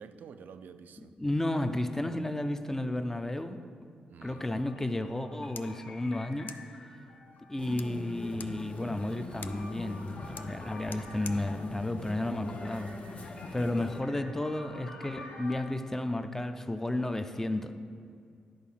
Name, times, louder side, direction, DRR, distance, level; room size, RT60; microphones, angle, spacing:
voice 1, 0.0-1.2 4.1-4.4 13.5-13.7, right 6 dB, 75° right, 11 dB, 0.4 m, -49 dB
voice 2, 1.2-3.6 4.2-6.5 6.8-6.9 7.5-17.7, left 1 dB, 15° left, 8 dB, 0.5 m, -33 dB
sound 1, 4.2-8.0 8.7-11.8 12.6-15.6, left 2 dB, 90° left, 1.4 m, -50 dB
sound 2, 5.1-13.1, left 7 dB, 70° left, 0.4 m, -52 dB
sound 3, 7.6-14.0, left 3 dB, 45° left, 0.8 m, -43 dB
10.5 x 4.1 x 5.6 m, 2.3 s
cardioid pair, 70°, 3 cm